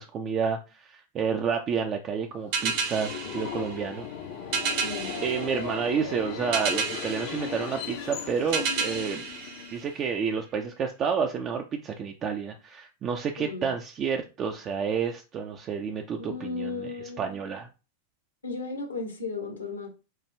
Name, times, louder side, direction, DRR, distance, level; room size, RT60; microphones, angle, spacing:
voice 1, 0.0-4.1 5.2-9.3 9.7-16.9 17.2-17.7, right 6 dB, 30° right, 0.4 m, -30 dB
Subway metro underground, 2.4-10.1, left 7 dB, 50° left, 0.6 m, -37 dB
sound 1, 2.5-10.4, right 5 dB, 45° right, 0.8 m, -33 dB
voice 2, 4.8-5.2 13.4-13.7 16.2-17.3 18.4-19.9, left 3 dB, 75° left, 1.2 m, -35 dB
4.6 x 2.3 x 3.2 m
figure-of-eight pair, 90°, 0 cm